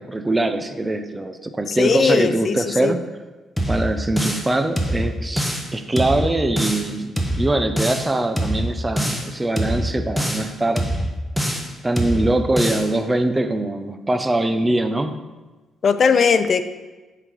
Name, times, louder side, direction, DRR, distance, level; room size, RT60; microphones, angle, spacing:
voice 1, 0.0-3.0 3.7-10.8 11.8-15.3, right 2 dB, 15° right, 8 dB, 0.5 m, -22 dB
voice 2, 1.7-2.9 15.8-16.6, left 5 dB, 50° left, 11 dB, 0.4 m, -18 dB
sound 1, 3.6-4.5 4.8-5.7 6.0-6.9 7.2-8.1 8.4-9.3 9.6-10.5 10.8-11.7 12.0-12.9, equal, ahead, 0.9 m, -24 dB
7.8 x 3.9 x 4.6 m, 1.2 s
cardioid pair, 90°, 0 cm